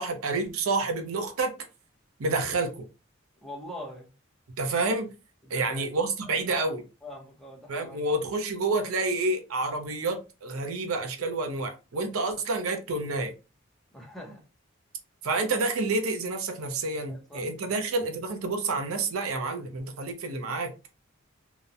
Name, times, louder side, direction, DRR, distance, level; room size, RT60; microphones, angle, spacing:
voice 1, 0.0-1.5 2.2-2.9 4.6-5.1 5.5-6.8 7.7-13.3 15.2-20.7, right 3 dB, 85° right, 0.6 m, -29 dB
voice 2, 3.4-4.1 5.4-5.9 6.2-6.7 7.0-8.0 13.9-14.4 17.1-17.8, left 1 dB, ahead, 0.6 m, -43 dB
2.8 x 2.0 x 2.4 m
head